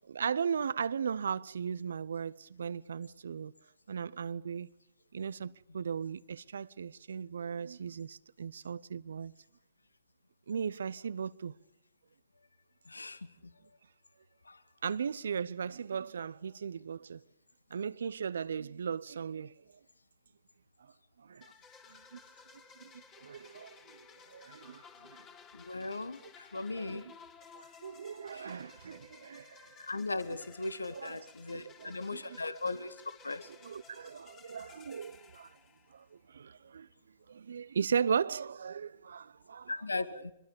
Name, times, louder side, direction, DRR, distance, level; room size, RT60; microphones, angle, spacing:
voice 1, 0.1-3.5 3.9-4.7 5.1-9.3 10.5-11.5 14.8-17.2 17.7-19.5 21.2-21.5 22.1-22.2 22.8-22.9 23.2-24.8 25.1-25.2 26.2-26.3 26.8-27.1 27.5-29.7 30.9-32.4 33.5-35.5 35.9-36.9 37.3-39.7, right 7 dB, 70° right, 0.7 m, -37 dB
voice 2, 12.9-13.2 14.5-14.6 25.5-27.1 28.3-28.6 29.8-33.0 33.2-33.5 39.7-40.3, left 3 dB, 85° left, 1.1 m, -38 dB
sound 1, 21.4-36.2, left 6 dB, 25° left, 3.1 m, -57 dB
25.5 x 22.5 x 5.3 m
figure-of-eight pair, 115°, 0 cm